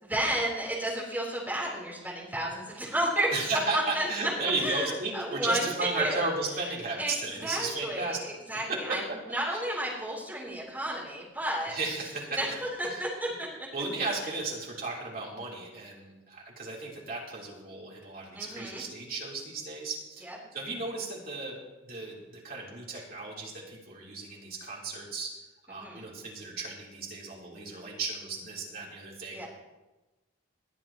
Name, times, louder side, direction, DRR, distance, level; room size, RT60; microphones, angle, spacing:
voice 1, 0.0-3.3 3.7-4.1 4.6-6.3 6.6-6.7 7.0-11.8 12.3-13.5 14.2-14.4 18.3-18.8 20.2-20.4 25.7-26.1 29.3-29.5, right 1 dB, 10° right, -5 dB, 3.8 m, -32 dB
voice 2, 3.3-8.2 8.7-9.0 9.5-9.6 11.7-12.4 12.9-13.0 13.7-21.6 21.8-25.4 25.7-29.5, right 3 dB, 45° right, -4 dB, 3.6 m, -34 dB
20.5 x 11.5 x 3.0 m, 1.1 s
head